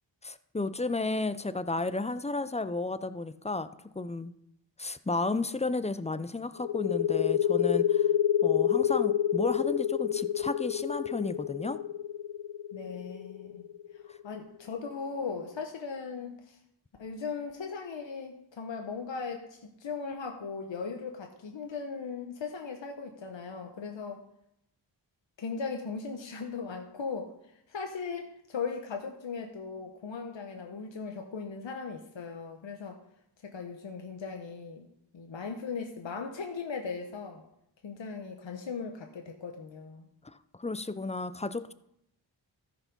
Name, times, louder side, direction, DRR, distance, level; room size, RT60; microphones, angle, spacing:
voice 1, 0.2-3.7 4.0-4.3 4.8-8.1 8.4-11.8 40.2-41.7, left 3 dB, 15° left, 13 dB, 0.5 m, -33 dB
sound 1, 6.6-14.0, left 11 dB, 55° left, 0.7 m, -27 dB
voice 2, 12.7-13.7 14.0-16.6 17.0-24.2 25.4-27.3 27.7-33.0 33.4-34.9 35.1-37.4 37.8-40.1, left 5 dB, 70° left, 3 dB, 1.0 m, -38 dB
13.5 x 5.0 x 5.3 m, 0.78 s
cardioid pair, 40°, 46 cm